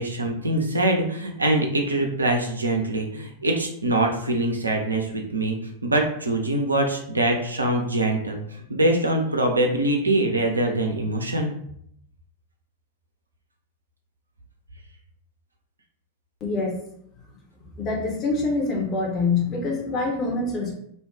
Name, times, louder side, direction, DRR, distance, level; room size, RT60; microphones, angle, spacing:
voice 1, 0.0-5.6 5.8-11.5, right 1 dB, 80° right, 2 dB, 0.5 m, -23 dB
voice 2, 16.4-16.8 17.8-20.7, left 3 dB, 30° left, -1 dB, 0.8 m, -25 dB
2.5 x 2.2 x 3.5 m, 0.70 s
figure-of-eight pair, 90°, 0 cm